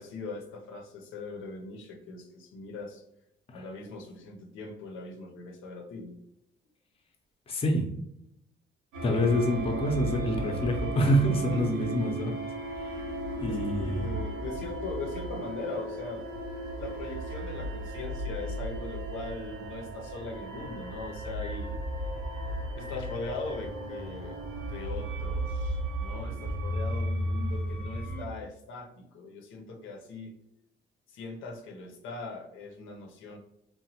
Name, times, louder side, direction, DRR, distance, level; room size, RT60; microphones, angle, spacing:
voice 1, 0.0-3.0 3.5-6.2 11.5-11.6 13.5-16.2 16.8-21.8 22.8-24.4 24.7-30.4 31.1-33.4, left 3 dB, 85° left, 3 dB, 0.6 m, -40 dB
voice 2, 7.5-8.1 9.0-12.4 12.8-13.1 13.4-14.1, equal, 30° left, 3 dB, 0.6 m, -27 dB
sound 1, 8.9-28.2, right 1 dB, 90° right, 0.8 m, -35 dB
2.9 x 2.1 x 2.8 m, 0.79 s
cardioid pair, 90°, 20 cm